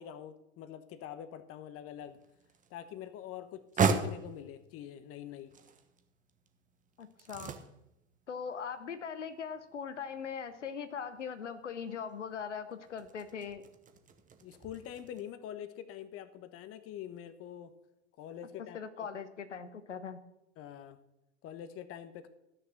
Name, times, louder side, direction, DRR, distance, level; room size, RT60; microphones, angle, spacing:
voice 1, 0.0-2.2 2.7-5.5 14.4-17.7 18.2-19.1 20.6-21.0 21.4-22.3, left 10 dB, 40° left, 12 dB, 1.1 m, -45 dB
sound 1, 2.0-15.2, right 4 dB, 20° right, 1.2 m, -39 dB
voice 2, 7.0-7.5 8.3-13.6 18.7-20.2, left 6 dB, 85° left, 11 dB, 0.9 m, -40 dB
13.5 x 6.7 x 6.0 m, 0.87 s
figure-of-eight pair, 85°, 35 cm